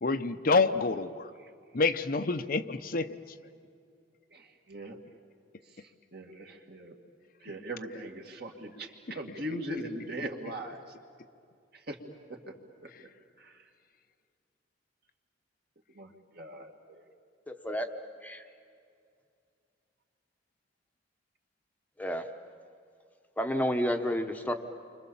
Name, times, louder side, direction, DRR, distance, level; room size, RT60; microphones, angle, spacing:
voice 1, 0.0-1.3 1.7-3.1 9.1-9.2 12.9-13.0, left 3 dB, 50° left, 9 dB, 0.7 m, -27 dB
voice 2, 4.3-5.0 6.1-7.0 7.4-10.8 11.9-12.0 13.4-13.6 16.0-17.1, right 1 dB, 55° right, 2 dB, 2.3 m, -40 dB
voice 3, 17.5-17.9 18.2-18.4 22.0-22.2 23.4-24.5, equal, 10° left, 5 dB, 0.9 m, -30 dB
29.5 x 25.5 x 7.2 m, 2.3 s
head